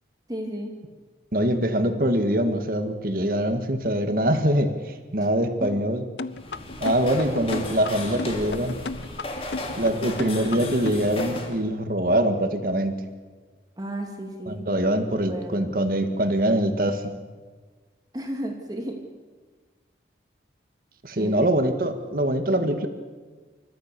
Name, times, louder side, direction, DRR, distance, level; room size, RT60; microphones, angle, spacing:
voice 1, 0.3-0.8 5.6-5.8 13.8-14.7 15.3-15.7 18.1-19.0 21.1-21.5 21.8-21.9, right 1 dB, 20° right, 2 dB, 2.2 m, -33 dB
voice 2, 1.3-6.0 6.8-8.8 9.8-13.0 14.5-17.1 21.0-22.9, right 1 dB, 50° right, 7 dB, 1.9 m, -24 dB
sound 1, 6.2-11.5, left 3 dB, 75° left, 0.7 m, -33 dB
sound 2, 6.3-11.6, left 2 dB, 30° left, 2.7 m, -35 dB
30.0 x 14.0 x 6.9 m, 1.4 s
head